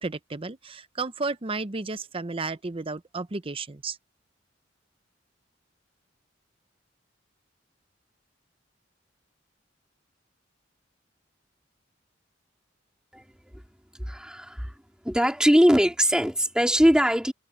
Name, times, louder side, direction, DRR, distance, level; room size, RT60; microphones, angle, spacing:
voice 1, 0.0-4.0, right 3 dB, 30° right, 0.8 m, -33 dB
voice 2, 13.9-14.8 15.0-17.3, equal, 5° right, 3.8 m, -21 dB
head